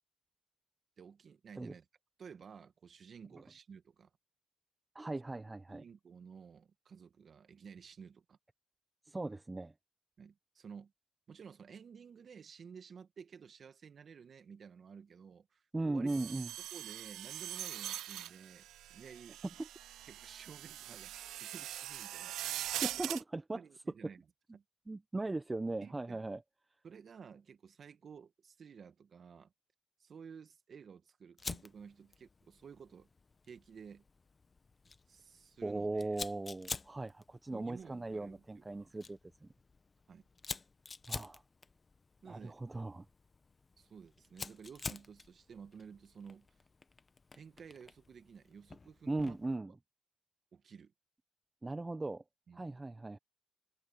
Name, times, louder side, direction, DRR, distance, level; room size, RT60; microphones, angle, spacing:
voice 1, 1.0-1.8 2.2-4.1 5.7-8.4 10.2-10.9 11.3-16.2 16.7-19.4 20.0-22.8 23.5-24.2 24.5-24.6 25.8-26.2 26.8-29.5 30.0-33.1 33.5-34.0 35.1-36.1 37.5-38.9 40.1-40.2 42.2-42.5 43.8-46.5 47.3-49.4 49.7-49.8 50.5-50.9 52.5-52.8, right 6 dB, 50° right, 2.0 m, -53 dB
voice 2, 4.9-5.8 9.1-9.7 15.7-16.5 19.6-19.7 22.8-23.6 24.9-26.4 35.6-39.5 41.1-41.4 42.2-43.0 49.1-49.7 51.6-52.2 52.5-53.2, right 2 dB, 20° right, 0.8 m, -38 dB
sound 1, 16.1-23.2, right 13 dB, 85° right, 0.5 m, -42 dB
Fire, 31.4-49.6, left 4 dB, 30° left, 1.0 m, -49 dB
cardioid pair, 90°, 0 cm